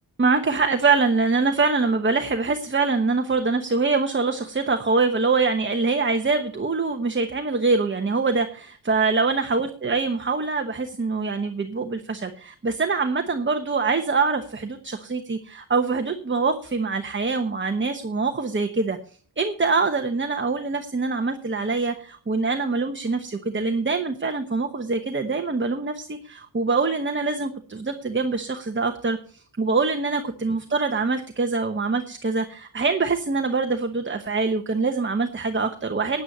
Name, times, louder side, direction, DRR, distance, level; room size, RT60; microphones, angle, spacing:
voice 1, 0.2-19.0 19.4-36.2, right 4 dB, 25° right, 6 dB, 1.0 m, -24 dB
9.6 x 9.4 x 6.7 m, 0.43 s
wide cardioid pair, 115°, 45 cm